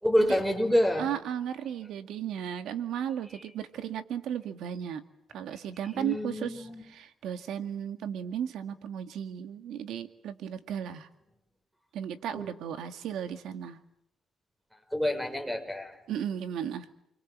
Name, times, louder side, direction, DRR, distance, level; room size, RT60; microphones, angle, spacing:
voice 1, 0.0-1.1 6.0-6.8 12.3-12.5 14.9-15.9, equal, 5° right, 7 dB, 6.0 m, -27 dB
voice 2, 1.0-5.0 5.3-11.1 11.9-13.8 16.1-16.9, right 9 dB, 80° right, 8 dB, 2.0 m, -35 dB
29.0 x 23.0 x 7.5 m, 0.80 s
cardioid pair, 90°, 0 cm